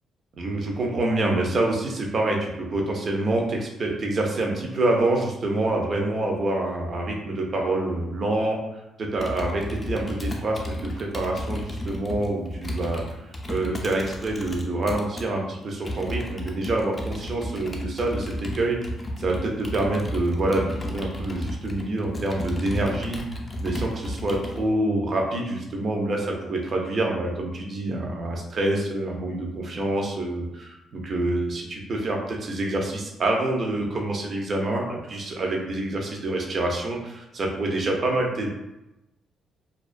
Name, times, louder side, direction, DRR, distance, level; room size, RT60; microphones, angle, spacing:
voice 1, 0.4-13.0 13.5-18.8 19.2-23.2 23.6-38.5, right 2 dB, 45° right, 0 dB, 0.5 m, -26 dB
Computer keyboard, 9.2-15.3 15.8-24.6, equal, 25° left, 0.4 m, -33 dB
2.3 x 2.3 x 2.5 m, 0.94 s
cardioid pair, 90°, 0 cm